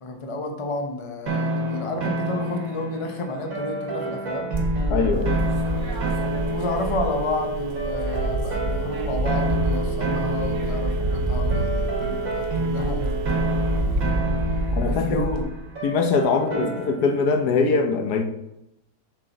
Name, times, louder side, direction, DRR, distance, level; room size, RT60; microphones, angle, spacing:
voice 1, 0.0-4.5 6.5-13.0 14.9-15.5 16.3-16.7, left 2 dB, 30° left, 4 dB, 0.6 m, -31 dB
sound 1, 1.3-17.2, right 1 dB, 55° right, 1.7 m, -29 dB
sound 2, 4.5-7.4 7.7-15.4, right 1 dB, 35° right, 0.9 m, -27 dB
voice 2, 4.9-5.4 14.8-15.2 15.8-18.2, left 4 dB, 70° left, 5 dB, 1.3 m, -22 dB
Telephone, 5.1-14.1, right 4 dB, 90° right, 1.2 m, -32 dB
7.4 x 6.0 x 3.9 m, 0.85 s
omnidirectional pair, 1.8 m